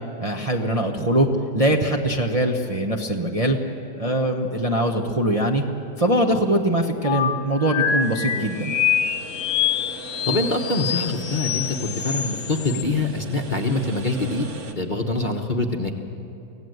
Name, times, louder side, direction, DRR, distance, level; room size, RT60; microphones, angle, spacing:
voice 1, 0.2-1.3 1.5-3.6 4.0-5.6 6.0-8.7, right 1 dB, 25° right, 1 dB, 1.0 m, -22 dB
sound 1, 7.0-12.8, left 8 dB, 70° left, 1.3 m, -26 dB
sound 2, 8.0-14.7, right 3 dB, 45° right, 1.6 m, -39 dB
voice 2, 10.3-14.5 14.7-15.9, left 2 dB, 30° left, 2 dB, 1.2 m, -24 dB
25.0 x 17.0 x 8.0 m, 2.8 s
omnidirectional pair, 1.8 m